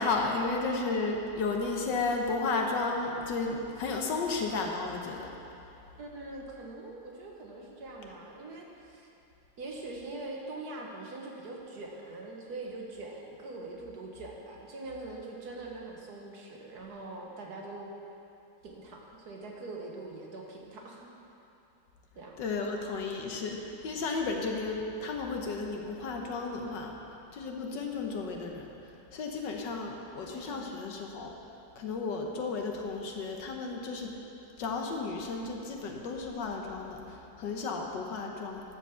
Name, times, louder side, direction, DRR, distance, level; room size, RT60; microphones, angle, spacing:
voice 1, 0.0-5.3 22.4-26.9 27.3-28.7 29.1-31.3 31.8-34.1 34.6-38.6, left 3 dB, 65° left, 1 dB, 1.5 m, -33 dB
voice 2, 6.0-9.1 9.6-17.9 18.6-21.1 22.1-22.4 30.1-30.8, right 2 dB, 55° right, -1 dB, 1.5 m, -43 dB
12.5 x 5.2 x 6.9 m, 2.8 s
omnidirectional pair, 2.1 m